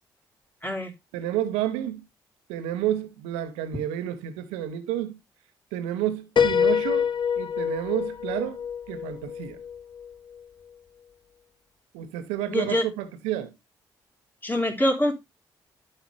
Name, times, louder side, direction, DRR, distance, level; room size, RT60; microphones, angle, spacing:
voice 1, 0.6-0.9 12.5-12.8 14.4-15.1, left 1 dB, 15° left, 3.1 m, -24 dB
voice 2, 1.1-2.1 2.5-5.2 5.7-7.1 7.4-9.6 11.9-13.5, right 12 dB, 80° right, 0.8 m, -30 dB
Piano, 6.4-10.1, left 7 dB, 45° left, 0.7 m, -26 dB
11.5 x 4.9 x 3.1 m
hypercardioid pair, 40°, 11 cm